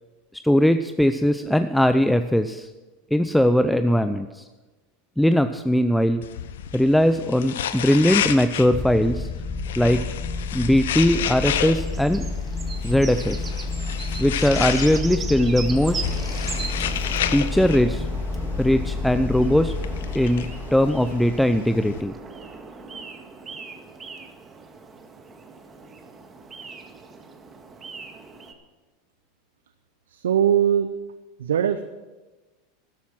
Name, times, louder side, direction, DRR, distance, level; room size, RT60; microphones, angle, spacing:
voice 1, 0.4-2.7 3.1-4.5 5.2-6.2 6.7-9.3 9.8-10.0 10.5-12.2 12.8-13.5 14.2-16.0 17.3-18.0 18.6-19.7 20.1-22.1, equal, 5° left, 10 dB, 0.5 m, -20 dB
sound 1, 6.2-22.0, left 10 dB, 75° left, 0.8 m, -32 dB
sound 2, 8.7-22.0, left 3 dB, 25° left, 1.2 m, -30 dB
sound 3, 10.3-28.5, right 4 dB, 25° right, 1.7 m, -39 dB
voice 2, 30.1-30.9 31.4-31.8, right 9 dB, 80° right, 11 dB, 0.6 m, -20 dB
13.0 x 11.5 x 6.1 m, 1.2 s
hypercardioid pair, 95°, 0 cm